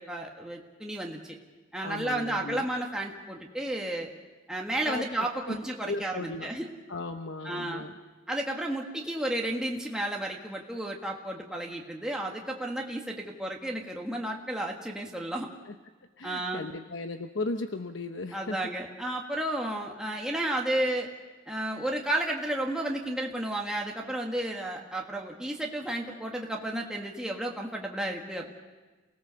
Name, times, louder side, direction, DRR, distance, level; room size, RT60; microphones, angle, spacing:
voice 1, 0.0-1.4 1.7-4.1 4.5-6.7 7.4-7.8 8.3-15.5 16.2-16.7 18.3-21.1 21.5-28.5, right 1 dB, 5° right, -1 dB, 1.6 m, -32 dB
voice 2, 1.8-2.7 4.9-5.0 5.5-5.6 5.8-6.5 6.9-7.9 15.6-15.7 16.2-18.6, left 2 dB, 75° left, 6 dB, 0.9 m, -36 dB
28.5 x 18.0 x 6.9 m, 1.3 s
head